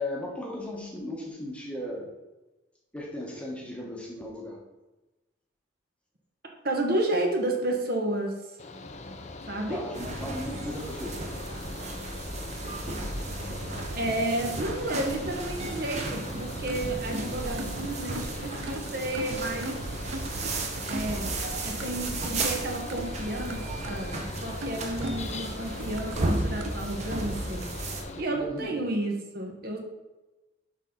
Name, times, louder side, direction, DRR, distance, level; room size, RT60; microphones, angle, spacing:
voice 1, 0.0-2.1 2.9-4.6 9.7-11.2 11.6-12.0 18.3-18.4 28.3-28.8, left 1 dB, 5° left, -1 dB, 1.0 m, -37 dB
voice 2, 6.6-8.4 9.5-9.8 13.9-19.8 20.8-21.3 21.6-27.6 28.2-29.8, right 1 dB, 50° right, 1 dB, 1.2 m, -31 dB
Mechanical fan, 8.6-28.2, left 3 dB, 35° left, 0.5 m, -41 dB
sound 1, 9.9-28.0, right 2 dB, 35° right, 0.8 m, -34 dB
sound 2, 13.1-26.7, right 2 dB, 80° right, 0.6 m, -40 dB
6.5 x 5.5 x 3.8 m, 1.1 s
head